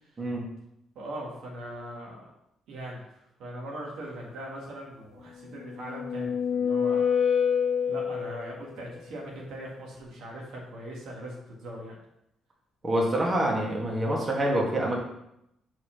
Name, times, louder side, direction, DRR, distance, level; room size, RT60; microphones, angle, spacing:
voice 1, 1.0-2.3 2.7-3.0 3.4-7.1 7.9-12.0, right 1 dB, 80° right, -2 dB, 1.7 m, -40 dB
sound 1, 5.5-8.6, left 7 dB, 65° left, 0.8 m, -26 dB
voice 2, 12.8-15.0, right 1 dB, 30° right, -2 dB, 1.8 m, -26 dB
4.9 x 4.2 x 5.7 m, 0.80 s
cardioid pair, 90°, 0 cm